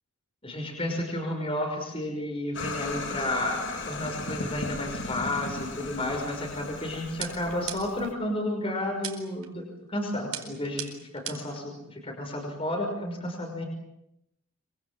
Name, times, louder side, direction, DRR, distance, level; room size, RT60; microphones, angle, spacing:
voice 1, 0.4-13.7, left 1 dB, 25° left, 2 dB, 5.7 m, -32 dB
sound 1, 2.5-8.1, left 2 dB, 60° left, 3.7 m, -36 dB
sound 2, 7.2-8.1 9.0-9.5 10.3-11.6, right 11 dB, 90° right, 4.6 m, -38 dB
27.0 x 24.5 x 7.7 m, 0.82 s
head